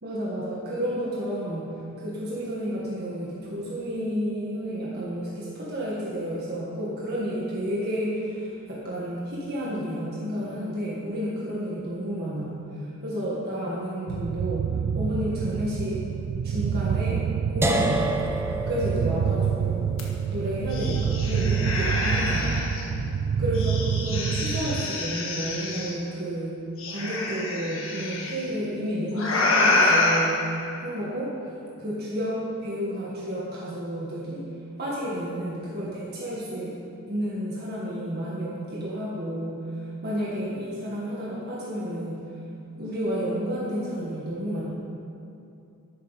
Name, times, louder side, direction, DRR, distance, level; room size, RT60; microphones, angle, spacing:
voice 1, 0.0-14.7 14.9-16.0 16.4-17.2 17.5-18.2 18.7-19.7 20.3-22.8 23.4-26.5 26.9-31.3 31.8-32.3 32.6-34.4 34.8-36.8 37.1-42.2 42.8-44.6, equal, 50° right, -7 dB, 1.9 m, -31 dB
sound 1, 14.1-24.9, right 8 dB, 85° right, 0.3 m, -28 dB
sound 2, 17.6-23.5, right 1 dB, 10° right, 0.7 m, -31 dB
sound 3, 20.0-20.1 20.4-22.8 23.5-25.9 26.8-28.3 29.1-30.2, left 2 dB, 70° left, 1.7 m, -26 dB
12.0 x 9.4 x 4.3 m, 2.6 s
head